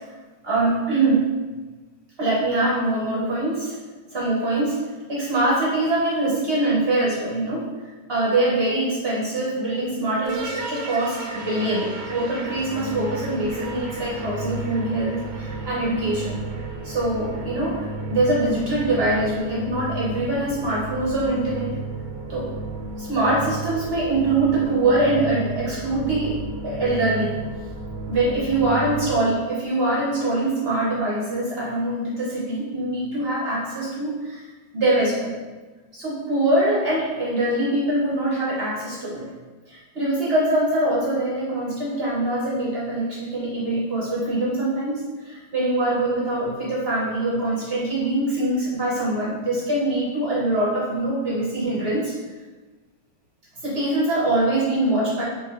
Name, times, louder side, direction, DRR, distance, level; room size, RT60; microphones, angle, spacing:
voice 1, 0.4-1.3 2.2-3.8 4.1-4.8 5.1-7.7 8.1-16.4 16.8-21.7 22.3-22.5 23.0-26.4 26.6-27.4 28.1-34.4 34.7-35.3 35.9-39.2 39.7-52.1 53.6-55.2, right 2 dB, 50° right, -6 dB, 0.7 m, -23 dB
sound 1, 10.2-29.2, right 2 dB, 85° right, 1.3 m, -33 dB
5.3 x 2.5 x 2.4 m, 1.3 s
omnidirectional pair, 2.0 m